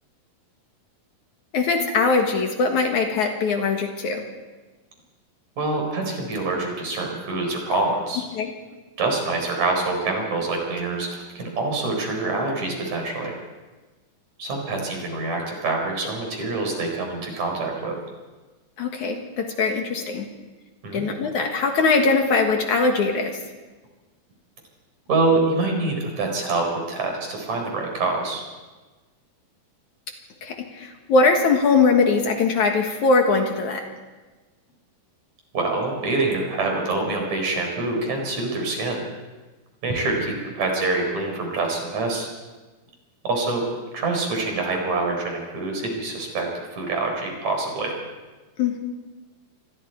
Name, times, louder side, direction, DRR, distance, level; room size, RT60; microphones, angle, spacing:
voice 1, 1.5-4.2 8.3-8.5 18.8-20.2 20.9-23.4 30.4-33.8 48.6-48.8, left 4 dB, 60° left, 3 dB, 2.8 m, -21 dB
voice 2, 5.6-8.2 9.0-13.3 14.4-18.0 20.8-21.1 25.1-28.4 35.5-39.0 39.8-42.3 43.2-43.6 43.9-47.9, right 3 dB, 50° right, 1 dB, 5.7 m, -25 dB
27.0 x 21.5 x 4.6 m, 1.2 s
omnidirectional pair, 4.1 m